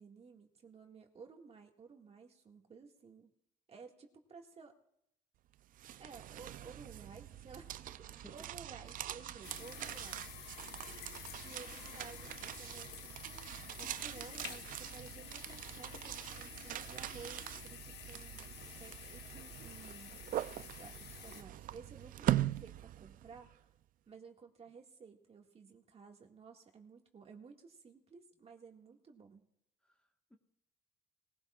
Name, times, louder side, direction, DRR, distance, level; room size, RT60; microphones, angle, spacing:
voice 1, 0.0-3.3 3.7-4.8 6.0-7.7 8.3-11.0 11.4-18.5 18.8-23.7 24.1-29.5, right 5 dB, 35° right, 2 dB, 1.9 m, -55 dB
sound 1, 5.5-23.5, right 13 dB, 55° right, 0.4 m, -42 dB
voice 2, 8.1-8.5 29.8-30.4, equal, 5° left, 3 dB, 1.4 m, -59 dB
Screech, 8.6-14.0, left 7 dB, 60° left, 2.7 m, -63 dB
sound 2, 9.4-21.4, left 9 dB, 80° left, 1.4 m, -51 dB
21.0 x 16.0 x 2.4 m, 0.76 s
cardioid pair, 110°, 17 cm